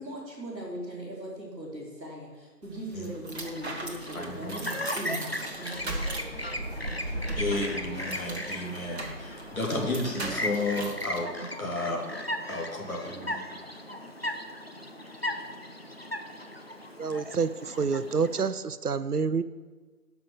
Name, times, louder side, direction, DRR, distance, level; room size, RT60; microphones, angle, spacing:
voice 1, 0.0-6.8 7.2-7.4, equal, 5° right, -18 dB, 1.4 m, -40 dB
sound 1, 2.6-11.2, right 1 dB, 40° right, 1.4 m, -38 dB
Chirp tweet, 3.4-18.5, left 1 dB, 40° left, 0.7 m, -37 dB
voice 2, 4.1-4.8 7.4-11.3 11.6-12.0 12.5-13.4, left 2 dB, 55° left, -1 dB, 2.6 m, -32 dB
voice 3, 17.0-19.4, right 5 dB, 65° right, 14 dB, 0.7 m, -28 dB
11.5 x 5.9 x 7.3 m, 1.4 s
figure-of-eight pair, 160°, 49 cm